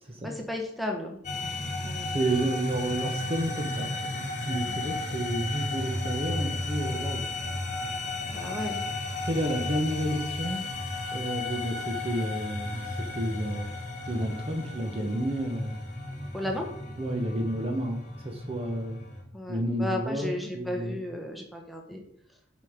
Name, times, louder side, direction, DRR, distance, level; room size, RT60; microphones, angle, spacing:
voice 1, 0.2-1.2 1.8-2.1 4.4-5.0 8.3-8.8 16.3-16.7 19.3-22.0, left 1 dB, ahead, 1 dB, 1.2 m, -34 dB
sound 1, 1.2-19.2, left 2 dB, 40° left, 1.6 m, -34 dB
voice 2, 2.1-7.3 9.2-10.7 11.1-13.7 14.0-15.8 17.0-19.0 19.5-21.0, right 1 dB, 30° right, 3 dB, 0.9 m, -31 dB
7.5 x 5.3 x 5.0 m, 0.68 s
head